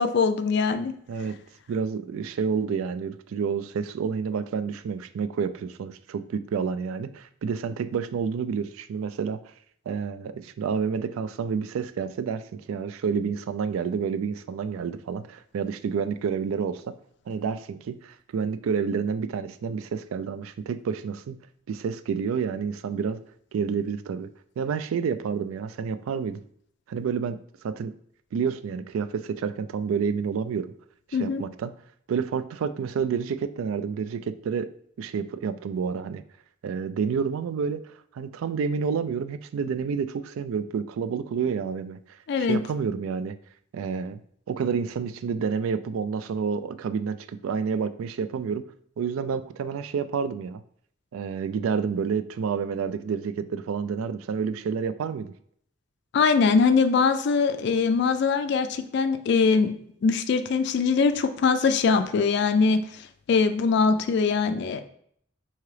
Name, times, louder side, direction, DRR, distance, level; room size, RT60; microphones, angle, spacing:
voice 1, 0.0-0.9 31.1-31.4 42.3-42.6 56.1-59.7 60.0-62.8 63.3-64.8, left 5 dB, 55° left, 9 dB, 0.3 m, -22 dB
voice 2, 1.7-9.4 9.9-12.4 12.7-16.8 17.3-21.4 21.7-23.2 23.5-24.3 24.6-26.4 26.9-27.4 27.6-27.9 28.3-30.7 31.1-31.7 32.1-34.7 35.0-36.2 36.6-42.0 42.4-43.4 43.7-44.2 44.5-48.6 49.0-50.6 51.1-55.3, right 6 dB, 90° right, 12 dB, 0.3 m, -29 dB
4.7 x 2.8 x 3.2 m, 0.65 s
head